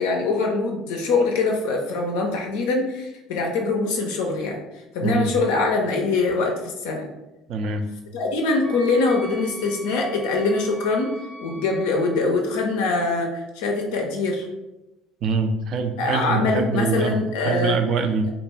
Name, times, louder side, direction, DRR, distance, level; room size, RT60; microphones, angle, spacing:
voice 1, 0.0-4.6 4.9-7.1 8.1-11.1 11.4-14.5 16.0-17.8, left 3 dB, 70° left, 1 dB, 0.4 m, -23 dB
voice 2, 5.0-5.3 7.5-7.8 15.2-18.3, right 4 dB, 55° right, 6 dB, 0.3 m, -24 dB
Wind instrument woodwind instrument, 8.6-12.2, right 1 dB, 90° right, 1.3 m, -42 dB
2.4 x 2.2 x 3.1 m, 0.99 s
hypercardioid pair, 60°, 0 cm